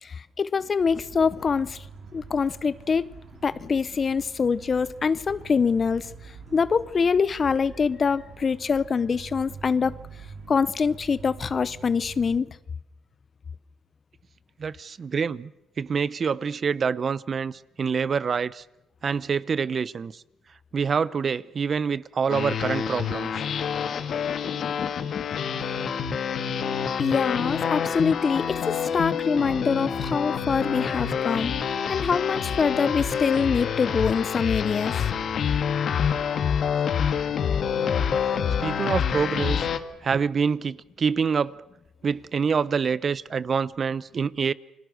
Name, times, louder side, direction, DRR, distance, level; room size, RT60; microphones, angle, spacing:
voice 1, 0.0-1.9 2.1-3.1 3.4-10.0 10.5-12.6 27.0-31.5 31.9-34.9, left 5 dB, 40° left, 0.8 m, -24 dB
sound 1, 0.8-12.4, right 5 dB, 65° right, 4.1 m, -45 dB
voice 2, 14.6-15.5 15.8-18.6 19.0-20.2 20.7-23.4 38.6-39.7 40.0-41.6 42.0-44.5, right 6 dB, 45° right, 0.8 m, -26 dB
sound 2, 22.3-39.8, left 7 dB, 60° left, 1.9 m, -27 dB
29.5 x 21.5 x 6.5 m
cardioid pair, 90°, 0 cm